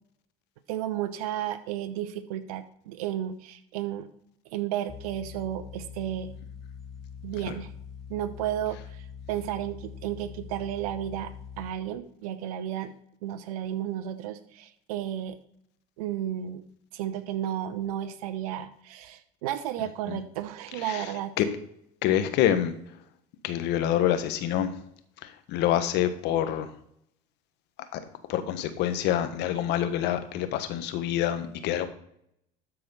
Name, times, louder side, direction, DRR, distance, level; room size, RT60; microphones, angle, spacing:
voice 1, 0.7-4.1 4.5-6.3 7.2-7.7 8.1-12.9 13.2-15.4 16.0-16.6 16.9-21.3, right 11 dB, 85° right, 11 dB, 0.8 m, -33 dB
sound 1, 4.9-11.7, left 7 dB, ahead, 1.5 m, -43 dB
voice 2, 22.0-22.7 23.4-24.8 25.2-26.7 27.9-28.0 28.3-31.9, left 11 dB, 65° left, 10 dB, 1.4 m, -26 dB
12.5 x 4.8 x 5.7 m, 0.70 s
supercardioid pair, 85°, 19 cm